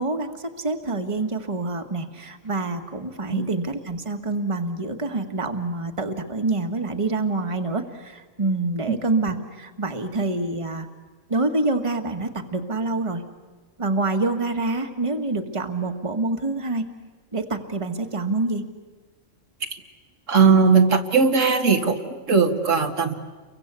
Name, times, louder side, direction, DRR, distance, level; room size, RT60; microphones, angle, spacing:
voice 1, 0.0-10.9 11.3-13.2 13.8-16.9 17.3-18.6, right 2 dB, 25° right, 5 dB, 1.7 m, -26 dB
voice 2, 20.3-23.1, right 5 dB, 75° right, 4 dB, 2.1 m, -19 dB
30.0 x 23.5 x 8.3 m, 1.4 s
omnidirectional pair, 1.3 m